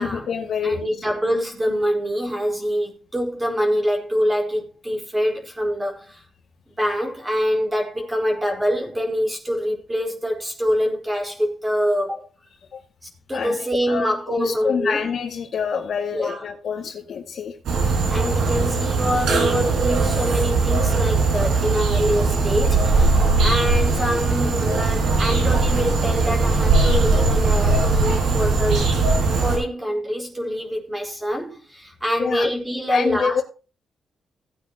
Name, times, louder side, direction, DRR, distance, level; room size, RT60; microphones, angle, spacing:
voice 1, 0.0-0.9 12.7-12.8 13.3-17.6 32.2-32.5 32.9-33.4, left 6 dB, 65° left, 2.3 m, -27 dB
voice 2, 0.6-6.2 6.8-12.2 13.0-15.1 16.1-16.5 18.1-28.9 29.4-33.4, equal, 15° right, 4.4 m, -25 dB
sound 1, 17.6-29.6, right 3 dB, 85° right, 5.3 m, -20 dB
18.0 x 9.1 x 3.0 m
cardioid pair, 110°, 0 cm